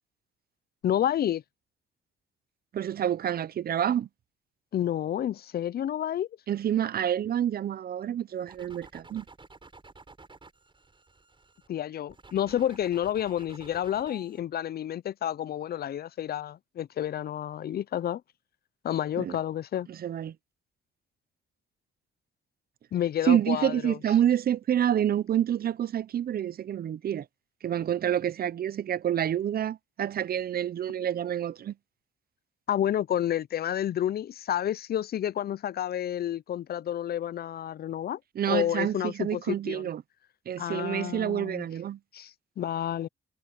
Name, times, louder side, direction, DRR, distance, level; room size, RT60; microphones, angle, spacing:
voice 1, 0.8-1.4 4.7-6.3 11.7-18.2 18.8-19.9 22.9-24.0 32.7-38.2 38.5-39.8 40.6-41.6 42.1-42.3 42.6-43.1, left 11 dB, 50° left, 0.5 m, -30 dB
voice 2, 2.7-4.1 6.5-9.2 19.2-19.4 19.9-20.4 23.2-27.3 27.6-31.7 38.3-40.0 40.5-42.0, right 10 dB, 50° right, 0.7 m, -28 dB
sound 1, 8.5-11.7 12.1-14.4, right 3 dB, 25° right, 7.2 m, -52 dB
cardioid pair, 90°, 20 cm